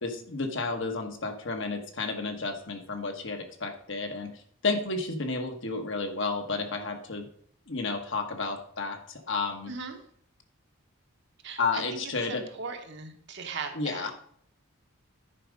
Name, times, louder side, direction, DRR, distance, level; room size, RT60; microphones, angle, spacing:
voice 1, 0.0-4.3 4.6-7.3 7.7-9.7 11.6-12.4 13.7-14.1, left 3 dB, 60° left, 5 dB, 1.3 m, -31 dB
voice 2, 9.7-10.0 11.4-14.1, right 4 dB, 55° right, 5 dB, 1.2 m, -39 dB
10.0 x 5.0 x 5.1 m, 0.63 s
head